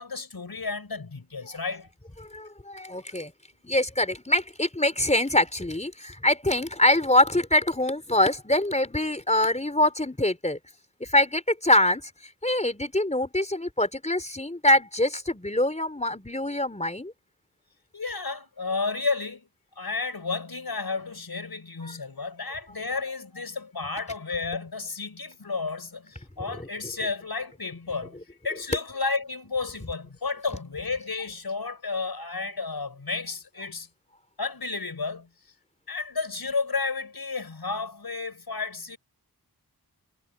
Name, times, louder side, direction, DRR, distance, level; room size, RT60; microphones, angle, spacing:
voice 1, 0.0-1.9 17.9-19.5 19.8-28.2 28.4-33.9 34.4-35.3 35.9-39.0, left 4 dB, 70° left, 5.4 m, -32 dB
voice 2, 2.3-3.3 3.6-10.6 11.0-12.1 12.4-17.1 26.5-26.7, left 1 dB, 20° left, 4.5 m, -24 dB
wide cardioid pair, 65°, 38 cm